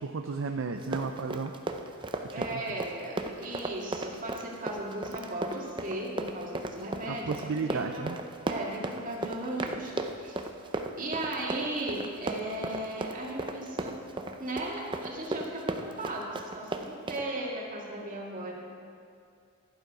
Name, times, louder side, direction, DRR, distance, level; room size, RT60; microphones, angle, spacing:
voice 1, 0.0-1.5 2.3-2.4 7.1-8.2, right 4 dB, 65° right, 5 dB, 0.5 m, -33 dB
Run, 0.8-17.3, right 2 dB, 25° right, 0.6 m, -35 dB
voice 2, 2.3-8.1 8.5-10.4 11.0-14.0 14.4-18.7, right 1 dB, 40° right, -2 dB, 2.0 m, -36 dB
11.5 x 11.0 x 4.8 m, 2.4 s
head